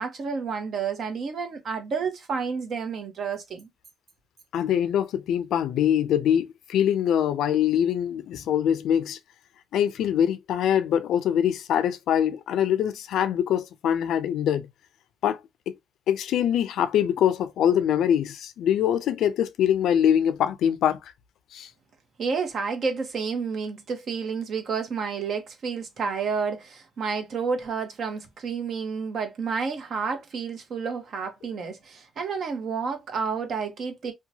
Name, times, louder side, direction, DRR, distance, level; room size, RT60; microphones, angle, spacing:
voice 1, 0.0-3.7 22.2-34.1, right 5 dB, 60° right, 0.9 m, -30 dB
voice 2, 4.5-9.2 9.7-14.7 15.2-15.4 15.7-15.8 16.1-21.0 21.5-21.7, left 9 dB, 80° left, 0.4 m, -23 dB
2.8 x 2.2 x 2.7 m
cardioid pair, 90°, 0 cm